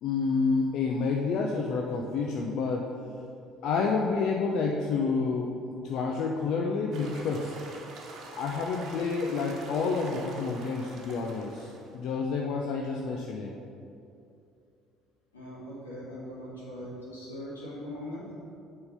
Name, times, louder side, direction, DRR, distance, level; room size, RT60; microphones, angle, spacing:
voice 1, 0.0-2.9 3.6-7.5 8.4-13.5, left 4 dB, 60° left, 0 dB, 0.5 m, -29 dB
sound 1, 6.9-12.0, right 2 dB, 55° right, 1.0 m, -45 dB
voice 2, 15.3-18.2, left 1 dB, 85° left, -7 dB, 1.7 m, -40 dB
7.9 x 3.8 x 5.4 m, 2.6 s
figure-of-eight pair, 55°, 0 cm